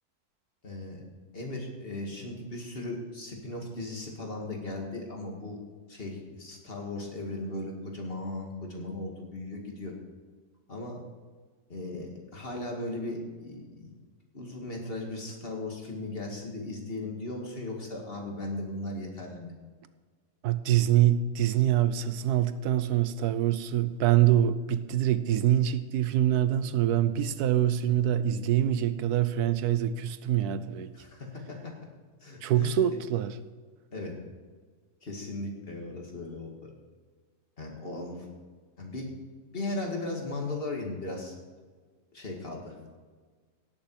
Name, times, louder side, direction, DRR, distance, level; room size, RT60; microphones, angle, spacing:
voice 1, 0.6-1.0 1.3-5.6 5.9-9.9 10.7-11.0 11.7-13.9 14.3-19.5 30.9-31.7 32.2-32.8 33.9-34.1 35.0-36.7 37.6-38.3 38.8-39.1 39.5-41.3 42.1-42.8, left 2 dB, 35° left, 2.2 m, -37 dB
voice 2, 20.4-30.9 32.4-33.3, right 11 dB, 85° right, 1.2 m, -25 dB
17.5 x 7.1 x 4.8 m
omnidirectional pair, 1.6 m